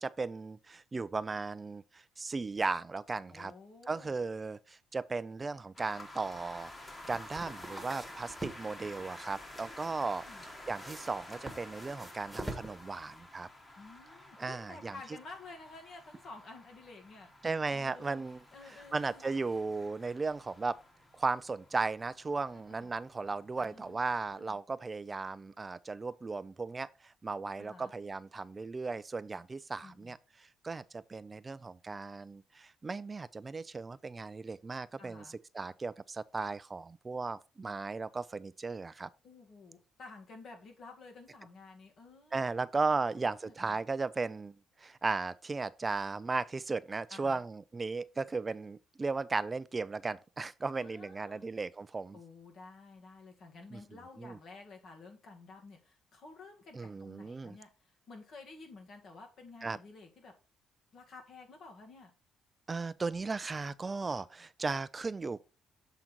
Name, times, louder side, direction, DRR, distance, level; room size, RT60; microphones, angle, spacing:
voice 1, 0.0-3.5 3.9-13.5 14.4-14.9 17.4-18.4 18.9-20.8 21.1-39.1 42.3-52.2 53.7-53.8 54.2-54.4 56.7-57.6 59.6-59.8 62.7-65.4, right 4 dB, 30° right, 0.3 m, -36 dB
voice 2, 3.3-4.2 9.6-10.5 13.8-17.3 17.7-18.2 18.5-19.2 22.5-22.9 23.6-24.6 27.6-27.9 29.8-30.2 35.0-35.3 39.2-42.9 43.4-43.8 47.1-47.4 50.8-51.5 52.1-60.3 60.9-62.1, left 3 dB, 60° left, 2.0 m, -52 dB
sound 1, 5.7-24.4, left 1 dB, 25° left, 1.6 m, -52 dB
sound 2, 6.7-13.2, right 1 dB, 5° right, 1.3 m, -47 dB
7.3 x 3.8 x 4.4 m
cardioid pair, 90°, 0 cm